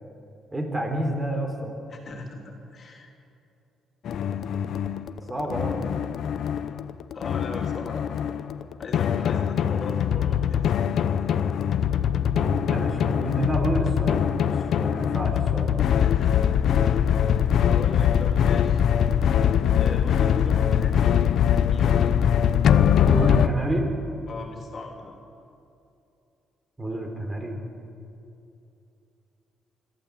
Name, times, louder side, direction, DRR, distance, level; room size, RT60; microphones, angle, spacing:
voice 1, 0.5-1.7 5.3-5.9 12.3-15.8 23.0-23.9 26.8-27.6, right 1 dB, 20° right, 3 dB, 4.1 m, -29 dB
voice 2, 1.9-3.1 5.2-5.3 7.1-8.1 8.8-10.9 16.0-16.5 16.7-17.1 17.6-18.9 19.7-22.1 24.3-25.1, left 3 dB, 45° left, 2 dB, 3.4 m, -39 dB
sound 1, 4.1-23.5, left 9 dB, 70° left, 0.8 m, -22 dB
26.5 x 12.5 x 8.6 m, 2.7 s
cardioid pair, 90°, 0 cm